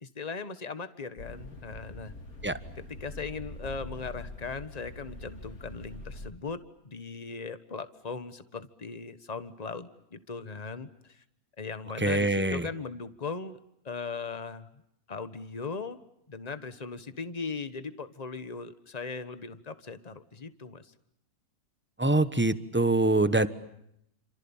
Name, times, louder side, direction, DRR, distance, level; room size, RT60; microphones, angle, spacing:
voice 1, 0.0-2.1 2.8-11.2 11.6-13.6 13.8-14.7 15.1-16.0 16.3-20.9, left 4 dB, 30° left, 12 dB, 1.5 m, -39 dB
sound 1, 1.2-6.3, left 1 dB, 85° left, 3.4 m, -43 dB
voice 2, 12.0-12.7 22.0-23.5, right 2 dB, 10° right, 13 dB, 1.2 m, -24 dB
29.5 x 27.0 x 7.3 m, 0.77 s
omnidirectional pair, 1.5 m